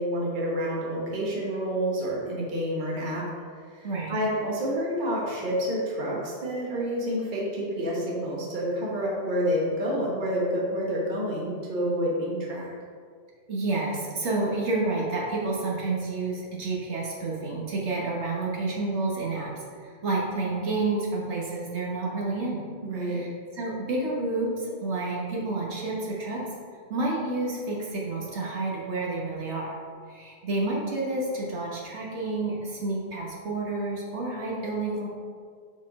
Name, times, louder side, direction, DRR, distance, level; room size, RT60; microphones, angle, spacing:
voice 1, 0.0-3.2 3.5-12.7 22.8-23.2, equal, 45° right, -4 dB, 1.3 m, -28 dB
voice 2, 3.8-4.1 13.5-22.6 23.0-23.3 23.5-26.4 26.9-29.8 30.1-35.1, right 2 dB, 75° right, -4 dB, 1.5 m, -29 dB
6.2 x 4.4 x 4.8 m, 2.1 s
omnidirectional pair, 1.2 m